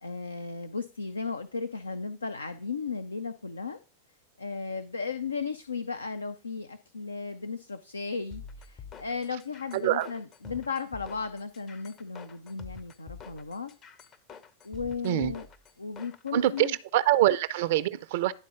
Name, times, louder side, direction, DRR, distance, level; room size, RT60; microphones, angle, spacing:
voice 1, 0.0-3.8 4.4-13.7 14.6-15.5 15.8-16.8, left 5 dB, 75° left, 0.4 m, -35 dB
sound 1, 8.3-16.8, left 6 dB, 30° left, 0.6 m, -47 dB
voice 2, 9.7-10.1 15.0-15.3 16.3-18.3, right 13 dB, 50° right, 0.4 m, -25 dB
10.5 x 4.0 x 4.9 m
figure-of-eight pair, 90°, 0 cm